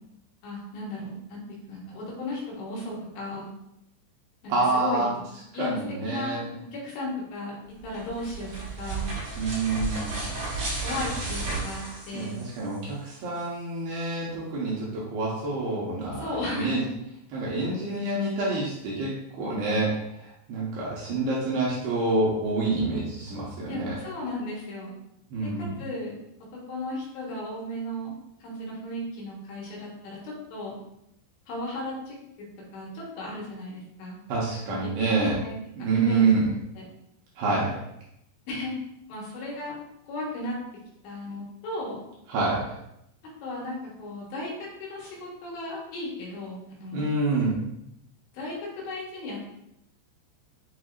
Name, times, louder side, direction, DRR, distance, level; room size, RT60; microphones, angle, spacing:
voice 1, 0.4-1.4 1.7-3.5 4.4-5.1 5.5-6.4 6.7-7.5 7.8-9.1 10.8-12.4 16.2-16.9 23.7-24.9 25.6-26.2 26.5-28.1 28.4-30.8 31.5-32.2 32.7-34.2 34.8-34.9 35.3-35.5 35.8-36.3 36.8-36.9 38.5-38.8 39.1-39.7 40.1-40.6 41.0-42.0 43.4-47.1 48.3-49.4, left 1 dB, 80° left, -5 dB, 3.4 m, -35 dB
voice 2, 4.5-5.1 5.6-6.4 9.4-10.1 12.1-16.8 17.3-19.9 20.2-23.9 25.3-25.7 34.3-35.4 35.8-36.5 37.4-37.7 42.3-42.6 46.9-47.6, right 3 dB, 75° right, -6 dB, 2.5 m, -27 dB
sound 1, 7.8-12.8, right 3 dB, 50° right, 2.0 m, -33 dB
7.4 x 2.7 x 2.4 m, 0.81 s
omnidirectional pair, 5.2 m